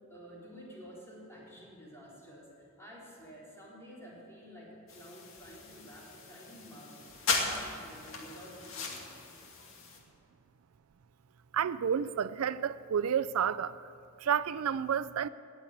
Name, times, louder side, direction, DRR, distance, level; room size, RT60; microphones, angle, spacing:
voice 1, 0.1-9.2, equal, 15° left, 4.3 m, -51 dB
sound 1, 4.9-10.0, left 3 dB, 70° left, 2.2 m, -37 dB
voice 2, 11.5-13.8 14.2-15.3, right 8 dB, 90° right, 0.4 m, -30 dB
19.0 x 7.4 x 8.6 m
head